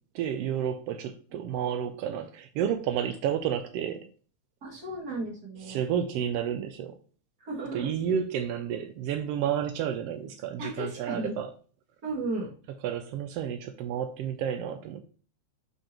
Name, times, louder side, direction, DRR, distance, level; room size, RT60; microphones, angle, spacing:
voice 1, 0.1-4.1 5.6-7.0 7.7-11.5 12.8-15.0, right 9 dB, 85° right, 1.4 m, -31 dB
voice 2, 4.6-5.8 7.4-7.9 10.6-11.3 12.0-12.5, right 2 dB, 35° right, 2.4 m, -34 dB
7.3 x 5.5 x 2.9 m
omnidirectional pair, 3.4 m